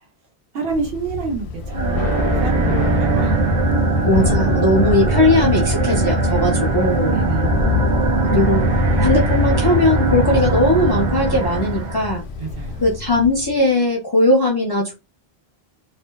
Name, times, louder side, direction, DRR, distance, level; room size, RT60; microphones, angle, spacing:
voice 1, 0.5-3.4 7.1-7.6 12.4-12.8, right 4 dB, 70° right, 1 dB, 1.1 m, -28 dB
Thunder / Rain, 0.7-13.6, left 4 dB, 85° left, 0.9 m, -27 dB
sound 1, 1.6-12.1, right 2 dB, 50° right, 0.8 m, -20 dB
voice 2, 4.0-7.2 8.3-8.6 9.0-12.2 12.8-14.9, left 1 dB, 30° left, -2 dB, 0.4 m, -18 dB
2.6 x 2.1 x 2.3 m, 0.26 s
omnidirectional pair, 1.1 m